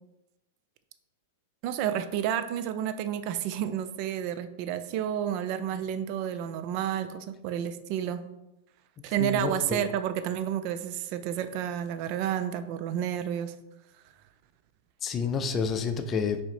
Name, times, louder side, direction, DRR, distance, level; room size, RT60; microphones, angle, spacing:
voice 1, 1.6-8.2 9.0-13.5, right 10 dB, 50° right, 11 dB, 0.3 m, -30 dB
voice 2, 9.2-9.8 15.0-16.4, left 5 dB, 25° left, 9 dB, 0.4 m, -29 dB
4.2 x 3.5 x 3.2 m, 0.93 s
hypercardioid pair, 115°, 0 cm